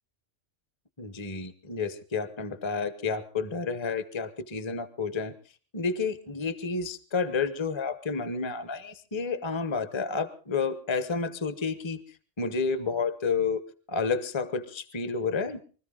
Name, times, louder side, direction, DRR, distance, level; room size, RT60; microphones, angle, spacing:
voice 1, 1.0-5.3 5.7-12.0 12.4-13.6 13.9-15.6, left 4 dB, 25° left, 12 dB, 1.0 m, -30 dB
24.5 x 14.0 x 3.8 m, 0.39 s
omnidirectional pair, 1.2 m